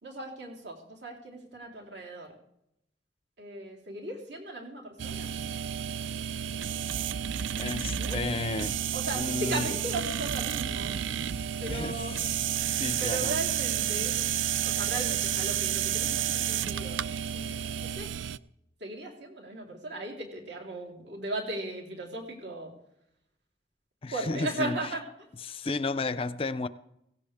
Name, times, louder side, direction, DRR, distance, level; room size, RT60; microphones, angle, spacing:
voice 1, 0.0-2.4 3.4-5.3 7.7-8.2 8.9-11.0 11.6-12.1 13.0-14.2 14.6-17.0 17.3-18.1 18.8-22.7 24.1-25.0, right 2 dB, 65° right, 3.8 m, -37 dB
sound 1, 5.0-18.4, right 9 dB, 80° right, 0.4 m, -31 dB
voice 2, 7.5-8.8 9.1-9.8 11.7-12.4 12.8-13.4 24.0-24.8 25.4-26.7, left 3 dB, 30° left, 0.4 m, -33 dB
17.0 x 17.0 x 3.5 m
head